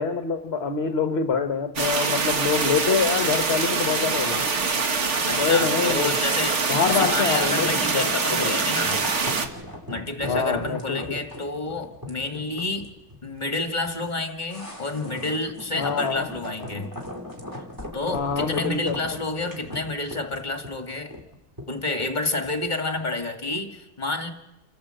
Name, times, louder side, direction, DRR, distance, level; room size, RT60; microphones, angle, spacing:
voice 1, 0.0-4.5 5.4-6.1 6.7-8.6 10.2-11.0 15.8-16.3 18.1-19.0, left 5 dB, 45° left, 1.2 m, -25 dB
sound 1, 1.8-9.5, right 4 dB, 50° right, 1.6 m, -24 dB
voice 2, 5.3-6.6 6.9-9.0 9.9-12.9 13.2-16.9 17.9-21.1 21.7-24.3, left 2 dB, 30° left, 1.9 m, -29 dB
sound 2, 5.4-22.7 23.0-23.1, left 1 dB, 10° right, 2.5 m, -39 dB
28.5 x 14.0 x 7.7 m
omnidirectional pair, 1.7 m